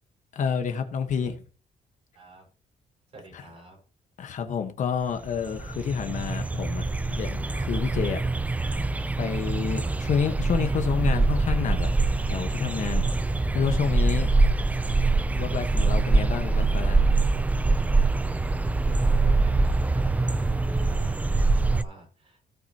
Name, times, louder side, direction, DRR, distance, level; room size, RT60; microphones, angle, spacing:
voice 1, 0.3-1.3 3.3-3.4 4.2-6.8 7.1-8.2 9.2-11.9 12.2-13.1 13.5-14.3 15.4-17.1, left 7 dB, 50° left, 1.2 m, -29 dB
voice 2, 2.1-2.5 3.1-3.8 9.8-9.9 14.7-15.1 18.8-22.4, right 3 dB, 40° right, 5.6 m, -47 dB
sound 1, 5.0-5.1 5.3-21.8, right 3 dB, 10° right, 0.4 m, -24 dB
17.0 x 5.9 x 2.9 m
cardioid pair, 175°, 16 cm